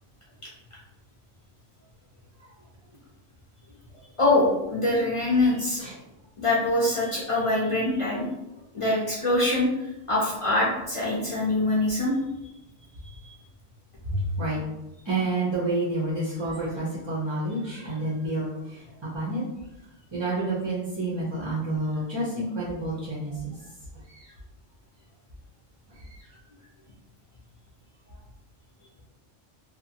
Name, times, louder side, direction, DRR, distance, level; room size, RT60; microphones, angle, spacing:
voice 1, 4.2-5.8 6.4-8.3 8.7-12.1, left 2 dB, 45° left, -6 dB, 0.4 m, -24 dB
voice 2, 14.1-14.6 15.0-19.4 20.1-23.6 24.1-24.3 25.9-26.3, right 2 dB, 35° right, -7 dB, 0.5 m, -29 dB
2.8 x 2.2 x 2.7 m, 0.92 s
omnidirectional pair, 1.2 m